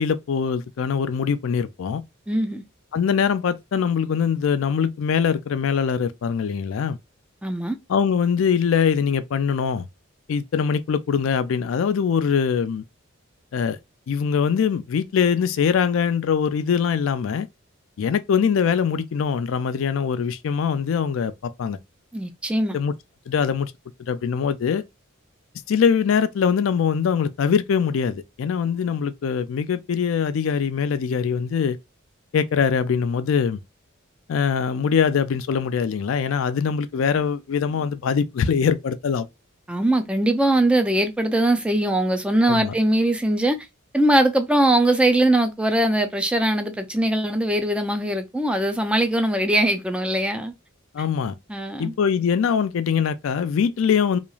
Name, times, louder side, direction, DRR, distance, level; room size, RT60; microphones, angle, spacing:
voice 1, 0.0-2.0 2.9-7.0 7.9-9.8 10.3-12.8 13.5-13.8 14.1-17.5 18.0-21.8 22.7-22.9 23.3-23.7 24.0-24.8 25.7-31.8 32.3-33.6 34.3-39.3 42.5-42.7 50.9-51.3 51.8-54.2, left 6 dB, 75° left, 0.4 m, -22 dB
voice 2, 2.3-2.6 7.4-7.8 22.1-22.8 39.7-43.6 43.9-50.5 51.5-51.9, right 1 dB, 5° right, 0.3 m, -21 dB
2.9 x 2.4 x 2.3 m
head